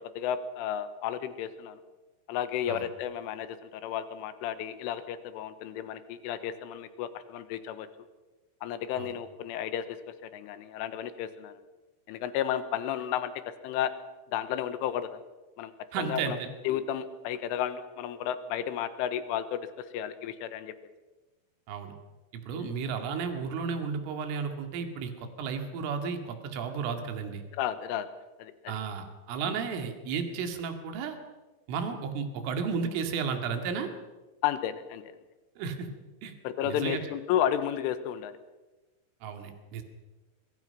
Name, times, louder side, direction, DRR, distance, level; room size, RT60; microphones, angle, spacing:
voice 1, 0.2-1.8 2.3-7.9 8.6-10.0 10.2-11.6 12.1-13.3 13.6-13.9 14.3-15.2 15.6-15.7 16.0-16.4 16.7-20.7 22.5-22.7 27.5-28.1 28.4-28.8 29.5-29.6 34.4-35.2 36.5-38.3, left 10 dB, 90° left, 11 dB, 3.6 m, -32 dB
voice 2, 15.9-16.5 21.7-21.9 22.3-27.4 28.7-31.2 31.7-33.9 35.6-35.9 36.2-36.3 36.6-37.0 39.2-39.8, right 6 dB, 80° right, 5 dB, 4.6 m, -33 dB
25.0 x 23.5 x 5.8 m, 1.2 s
omnidirectional pair, 5.6 m